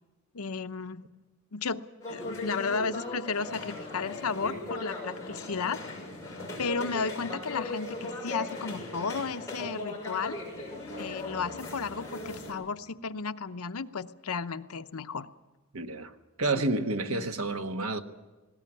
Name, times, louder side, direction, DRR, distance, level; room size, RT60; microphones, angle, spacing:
voice 1, 0.3-1.0 1.5-5.8 6.6-10.4 11.0-15.3 16.6-16.7 17.1-17.3, left 5 dB, 85° left, 0.8 m, -33 dB
sound 1, 2.0-12.5, left 2 dB, 15° left, 6.6 m, -38 dB
voice 2, 15.7-16.1 16.4-18.0, right 2 dB, 75° right, 1.3 m, -29 dB
19.5 x 17.5 x 9.6 m
head